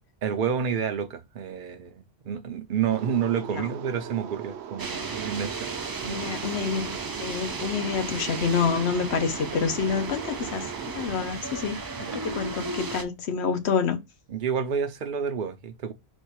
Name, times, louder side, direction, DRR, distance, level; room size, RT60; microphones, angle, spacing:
voice 1, 0.2-5.7 6.0-6.3 12.0-12.2 14.3-15.9, right 7 dB, 50° right, 0.8 m, -29 dB
sound 1, 2.9-11.1, right 9 dB, 80° right, 0.9 m, -39 dB
sound 2, 4.8-13.0, right 3 dB, 35° right, 0.3 m, -35 dB
voice 2, 6.0-11.8 12.1-14.0, left 6 dB, 75° left, 1.1 m, -28 dB
4.3 x 2.6 x 4.6 m
omnidirectional pair, 1.1 m